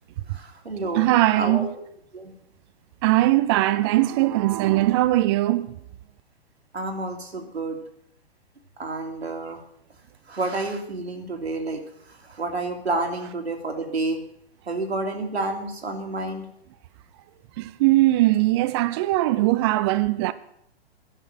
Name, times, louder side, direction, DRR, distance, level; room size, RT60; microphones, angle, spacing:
voice 1, 0.3-1.1 1.4-1.7 2.1-2.3 6.7-7.8 8.8-9.6 10.3-11.8 12.1-14.2 14.7-16.4, right 2 dB, 90° right, 2.4 m, -29 dB
voice 2, 0.9-1.7 3.0-5.8 17.6-20.3, right 17 dB, 25° right, 0.4 m, -20 dB
11.0 x 6.8 x 8.8 m
hypercardioid pair, 120°, 31 cm